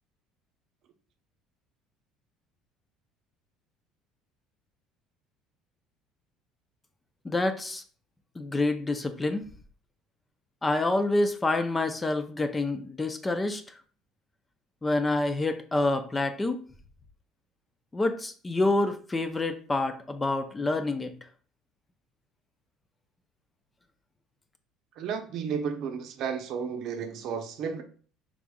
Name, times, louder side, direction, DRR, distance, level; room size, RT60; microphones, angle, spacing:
voice 1, 7.2-7.8 8.4-9.4 10.6-13.6 14.8-16.6 17.9-21.1, left 2 dB, 15° left, 8 dB, 0.4 m, -27 dB
voice 2, 25.0-27.8, right 6 dB, 60° right, 5 dB, 0.6 m, -33 dB
4.8 x 3.6 x 2.2 m, 0.43 s
cardioid pair, 120°, 0 cm